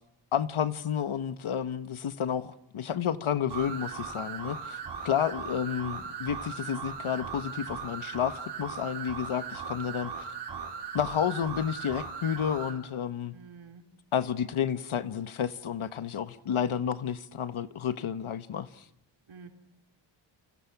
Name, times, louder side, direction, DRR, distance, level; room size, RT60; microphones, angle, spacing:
voice 1, 0.3-10.3 10.9-13.3 14.1-18.8, left 8 dB, 80° left, 1.5 m, -31 dB
sound 1, 3.5-12.8, right 6 dB, 55° right, 5.4 m, -38 dB
voice 2, 13.3-13.8 19.3-19.5, right 5 dB, 70° right, 4.8 m, -49 dB
29.5 x 28.5 x 6.1 m
wide cardioid pair, 140°, 49 cm